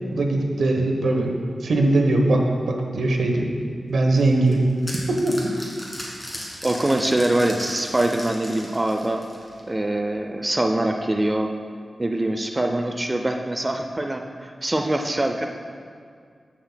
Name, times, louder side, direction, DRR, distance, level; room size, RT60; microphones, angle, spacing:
voice 1, 0.1-1.3 1.6-3.4 3.9-4.6 5.1-5.7, right 2 dB, 85° right, 2 dB, 1.0 m, -21 dB
sound 1, 4.2-9.7, left 1 dB, 15° left, 1.8 m, -37 dB
voice 2, 6.6-9.2 9.6-11.5 12.0-15.5, right 1 dB, 20° right, 4 dB, 0.4 m, -23 dB
14.0 x 7.3 x 2.2 m, 2.2 s
wide cardioid pair, 145°, 0 cm